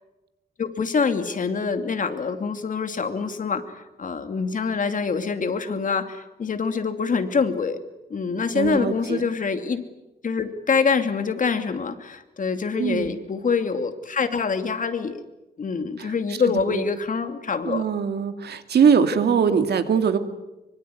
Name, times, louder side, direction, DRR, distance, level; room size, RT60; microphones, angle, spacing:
voice 1, 0.6-3.6 4.0-7.8 8.1-9.8 10.2-15.2 15.6-17.9, left 5 dB, 55° left, 8 dB, 2.7 m, -25 dB
voice 2, 8.5-9.2 12.8-13.1 16.0-16.1 16.7-16.8 17.7-20.2, right 6 dB, 85° right, 8 dB, 2.5 m, -21 dB
24.5 x 24.5 x 9.5 m, 1.0 s
wide cardioid pair, 120°, 17 cm